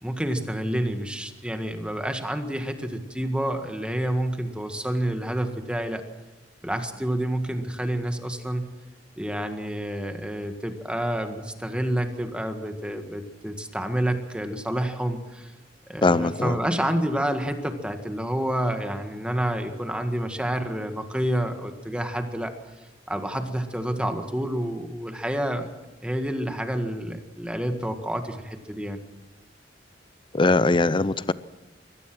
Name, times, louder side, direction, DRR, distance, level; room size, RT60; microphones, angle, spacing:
voice 1, 0.0-6.0 6.6-8.7 9.2-15.5 15.9-22.5 23.1-25.7 26.0-29.0, right 1 dB, 5° right, 6 dB, 1.7 m, -28 dB
voice 2, 16.0-16.6 30.3-31.3, left 3 dB, 30° left, 17 dB, 0.6 m, -21 dB
23.5 x 18.0 x 6.2 m, 1.1 s
head